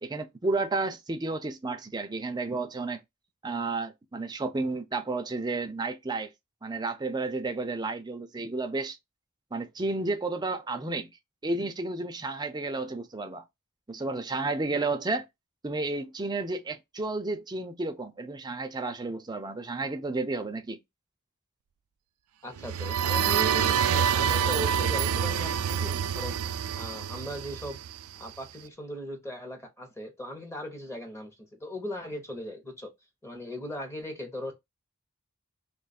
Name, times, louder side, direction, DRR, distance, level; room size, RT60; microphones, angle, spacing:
voice 1, 0.0-3.0 3.4-6.3 6.6-9.0 9.5-11.1 11.4-13.4 13.9-15.3 15.6-20.8, right 3 dB, 20° right, 0.5 m, -32 dB
voice 2, 22.4-26.4 26.8-27.8 28.2-32.9 33.2-34.5, equal, 15° left, 0.9 m, -38 dB
sound 1, 22.6-28.3, right 8 dB, 80° right, 0.4 m, -27 dB
3.0 x 2.4 x 4.1 m
head